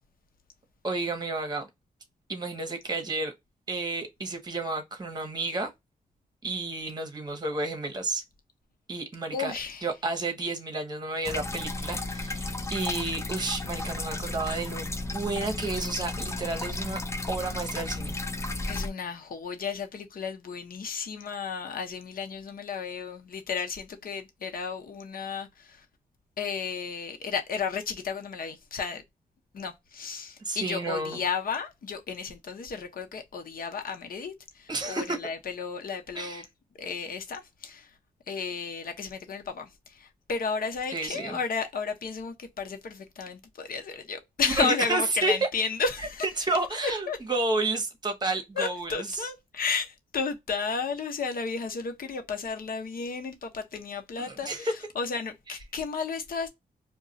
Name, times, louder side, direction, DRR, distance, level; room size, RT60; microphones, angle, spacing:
voice 1, 0.8-1.7 2.3-3.3 3.7-5.7 6.4-8.2 8.9-9.5 9.8-17.0 17.3-18.2 30.4-31.2 34.7-35.2 36.1-36.4 40.9-41.4 44.5-45.3 46.4-49.1 54.2-54.7, right 2 dB, 25° right, 0.9 m, -31 dB
voice 2, 9.3-9.9 18.7-25.9 26.4-29.0 29.5-36.5 36.8-38.0 38.3-46.3 46.8-47.2 48.6-56.5, left 5 dB, 65° left, 0.8 m, -33 dB
sound 1, 11.2-18.9, left 2 dB, 15° left, 0.5 m, -33 dB
2.4 x 2.2 x 3.9 m
cardioid pair, 90°, 16 cm